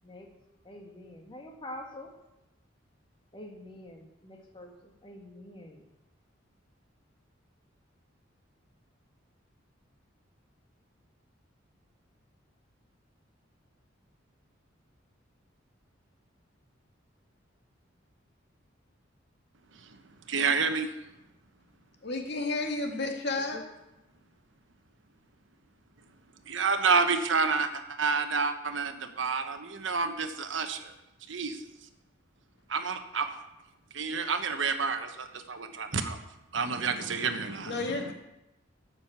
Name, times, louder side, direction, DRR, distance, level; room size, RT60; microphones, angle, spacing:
voice 1, 0.6-2.1 3.3-5.9 23.4-23.6, left 1 dB, 25° left, 1.9 m, -46 dB
voice 2, 19.7-20.9 26.4-30.9 31.3-31.6 32.7-33.4 33.9-36.2 36.5-38.1, right 4 dB, 75° right, 1.2 m, -29 dB
voice 3, 22.0-23.6 37.7-38.1, left 3 dB, 60° left, 2.1 m, -31 dB
13.0 x 6.6 x 8.0 m
head